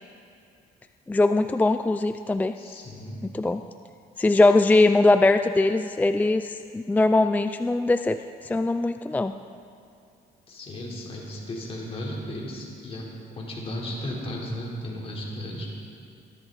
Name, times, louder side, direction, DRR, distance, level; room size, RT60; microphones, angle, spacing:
voice 1, 1.1-2.5 3.3-3.6 4.2-8.2 8.4-9.3, left 2 dB, 10° left, 9 dB, 0.4 m, -21 dB
voice 2, 2.5-3.2 10.5-13.1 13.3-15.7, left 1 dB, 35° left, -3 dB, 3.7 m, -35 dB
21.5 x 12.5 x 4.1 m, 2.5 s
cardioid pair, 110°, 17 cm